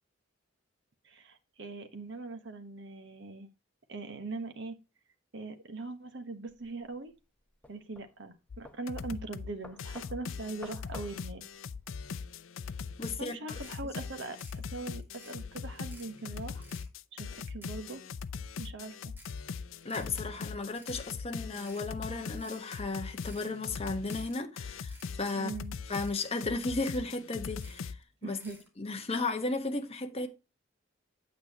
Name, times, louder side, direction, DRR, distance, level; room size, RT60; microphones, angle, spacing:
voice 1, 1.0-3.5 3.9-4.8 5.3-7.1 7.7-11.4 13.2-16.7 17.1-18.0 18.6-19.0 25.3-25.7 28.2-28.6, right 3 dB, 65° right, 1.2 m, -41 dB
sound 1, 6.5-12.1, left 1 dB, 5° left, 1.0 m, -53 dB
sound 2, 8.5-8.6 8.9-9.5 9.8-28.0, left 5 dB, 85° left, 0.5 m, -41 dB
voice 2, 13.0-13.6 19.8-25.5 25.9-27.9 28.2-28.4 28.8-30.3, left 3 dB, 30° left, 1.3 m, -34 dB
sound 3, 13.6-13.8 14.1-14.6 15.0-15.4 15.7-16.2 16.5-16.9 17.3-18.1 18.4-18.5 19.1-19.4 19.8-20.1 20.5-21.0 21.4-21.8 22.3-22.6 23.1-23.5 23.9-24.3 24.7-25.2 25.5-25.6 25.9-26.2 26.5-27.1 27.5-27.9 28.2-28.7, right 1 dB, 10° right, 2.7 m, -55 dB
8.7 x 8.2 x 2.9 m
head